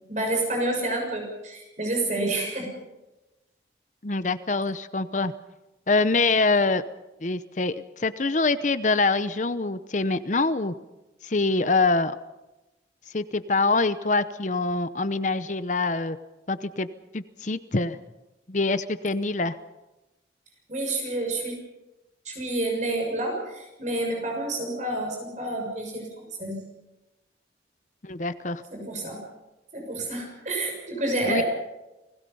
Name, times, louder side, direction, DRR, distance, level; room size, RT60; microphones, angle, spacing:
voice 1, 0.1-2.7 20.7-21.5 22.2-26.6 28.7-29.2 29.7-31.4, right 2 dB, 40° right, 1 dB, 6.7 m, -29 dB
voice 2, 4.0-5.3 5.9-6.8 7.2-10.7 11.2-12.2 13.1-16.2 16.5-16.9 17.1-18.0 18.5-19.6 28.0-28.6 31.3-31.4, left 3 dB, 40° left, 13 dB, 0.8 m, -25 dB
29.5 x 19.5 x 5.5 m, 1.0 s
head